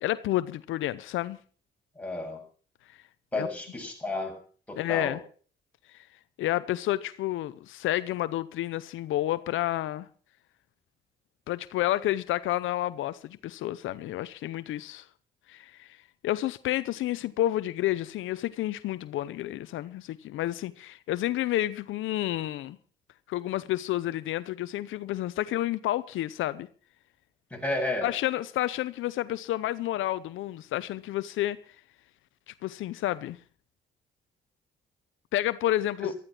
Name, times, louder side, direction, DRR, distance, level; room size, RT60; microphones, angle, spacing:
voice 1, 0.0-1.4 3.4-3.5 4.8-5.2 5.9-6.1 6.4-10.1 11.5-15.1 15.5-16.0 16.2-22.8 23.3-26.7 28.0-31.6 32.5-33.4 35.3-36.1, left 14 dB, 80° left, 0.7 m, -30 dB
voice 2, 2.0-2.4 3.3-4.4 4.7-5.2 27.5-28.1 36.0-36.1, left 2 dB, 5° left, 7.2 m, -32 dB
14.0 x 13.5 x 6.0 m
cardioid pair, 90°, 20 cm